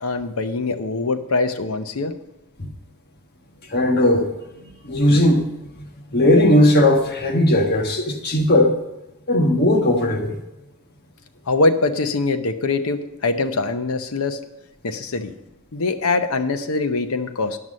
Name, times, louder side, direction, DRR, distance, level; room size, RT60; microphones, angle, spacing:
voice 1, 0.0-2.1 11.5-14.4 14.8-15.3 15.7-17.6, left 3 dB, 75° left, 0.8 m, -23 dB
voice 2, 3.7-4.3 4.8-5.5 6.1-8.8 9.3-10.3, left 1 dB, 45° left, 1.3 m, -17 dB
11.0 x 6.0 x 6.3 m
head